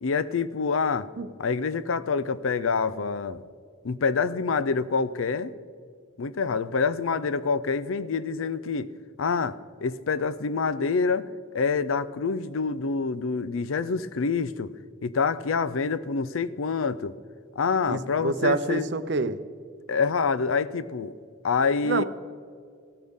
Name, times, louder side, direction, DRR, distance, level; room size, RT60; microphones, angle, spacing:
voice 1, 0.0-1.1 1.4-3.4 3.8-5.5 6.2-8.9 9.2-11.3 11.5-14.7 15.0-17.1 17.6-18.8 19.9-21.1 21.4-22.0, left 5 dB, 85° left, 16 dB, 0.5 m, -26 dB
voice 2, 17.9-19.4 21.8-22.0, right 3 dB, 55° right, 13 dB, 0.6 m, -27 dB
15.5 x 13.5 x 3.6 m, 2.3 s
head